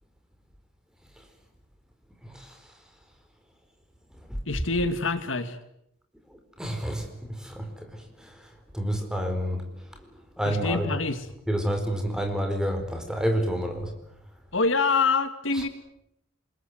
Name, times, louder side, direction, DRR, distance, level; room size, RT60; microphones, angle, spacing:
voice 1, 2.2-2.6 6.6-8.3 8.7-9.7 10.4-11.0 11.5-13.9 15.5-15.7, equal, 5° right, 5 dB, 4.4 m, -29 dB
voice 2, 4.5-5.6 10.5-11.3 14.5-15.7, left 4 dB, 70° left, 10 dB, 2.1 m, -25 dB
28.0 x 21.5 x 9.3 m, 0.78 s
head